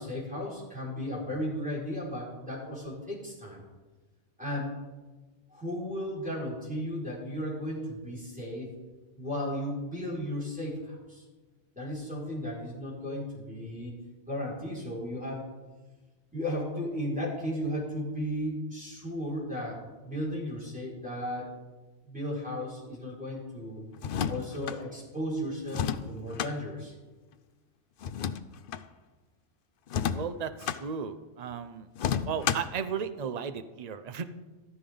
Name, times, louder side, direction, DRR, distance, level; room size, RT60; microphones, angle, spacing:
voice 1, 0.0-3.6 4.4-4.7 5.5-8.7 9.2-11.2 11.8-13.9 14.3-15.5 16.3-21.5 22.0-23.8 24.3-26.9, equal, 5° right, -7 dB, 5.4 m, -35 dB
sound 1, 24.0-24.8 25.7-26.5 28.0-28.9 29.9-30.8 32.0-32.8, left 8 dB, 55° left, 0.7 m, -31 dB
voice 2, 30.1-31.9 32.3-34.2, right 7 dB, 40° right, 10 dB, 0.7 m, -35 dB
14.5 x 14.0 x 3.9 m, 1.2 s
omnidirectional pair, 1.2 m